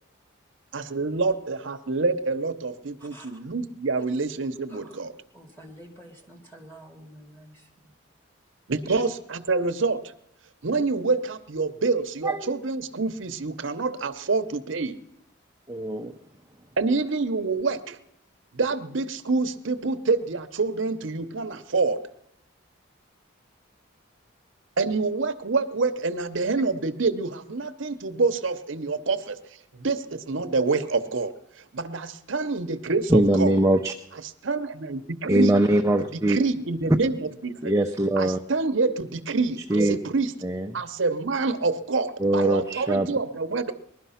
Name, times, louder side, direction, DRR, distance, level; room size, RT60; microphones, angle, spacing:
voice 1, 0.7-5.1 8.7-10.0 10.6-15.0 16.8-18.0 18.5-22.0 24.8-29.4 29.8-31.3 31.6-33.5 34.4-35.5 36.1-37.7 38.2-40.3 40.7-43.7, right 3 dB, 65° right, 10 dB, 0.8 m, -27 dB
voice 2, 3.0-3.3 4.7-5.0 5.3-7.9, right 1 dB, 10° left, 1 dB, 2.5 m, -48 dB
voice 3, 15.7-16.1 33.1-33.9 35.3-36.4 37.6-38.4 39.7-40.0 40.4-40.7 42.2-43.1, right 1 dB, 15° right, 3 dB, 0.6 m, -22 dB
20.0 x 12.0 x 5.7 m, 0.75 s
head